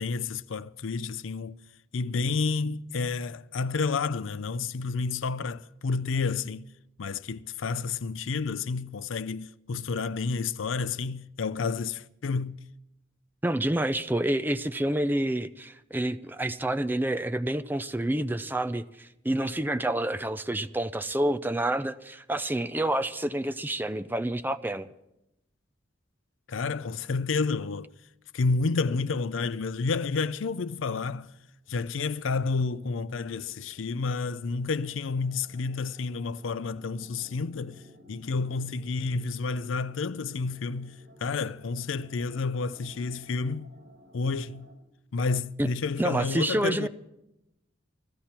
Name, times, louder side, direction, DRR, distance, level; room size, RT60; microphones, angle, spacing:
voice 1, 0.0-1.6 1.9-6.7 7.0-12.6 26.5-27.9 28.3-31.3 31.7-37.8 38.1-43.7 44.1-44.7 45.1-46.9, left 4 dB, 85° left, 0.5 m, -30 dB
voice 2, 13.4-24.9 45.6-45.7 46.0-46.9, right 1 dB, 10° right, 0.5 m, -28 dB
sound 1, 31.3-31.4 31.6-44.7, equal, 55° right, 3.7 m, -56 dB
21.0 x 14.5 x 4.4 m
head